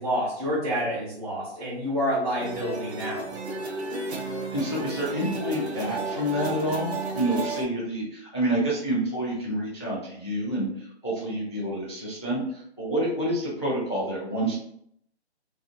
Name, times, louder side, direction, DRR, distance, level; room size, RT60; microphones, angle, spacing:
voice 1, 0.0-3.4, equal, 35° right, -8 dB, 0.7 m, -28 dB
sound 1, 2.4-7.6, right 2 dB, 70° right, 0.6 m, -33 dB
voice 2, 4.2-14.6, right 1 dB, 25° left, -5 dB, 0.3 m, -28 dB
2.4 x 2.4 x 2.4 m, 0.70 s
hypercardioid pair, 160°, 34 cm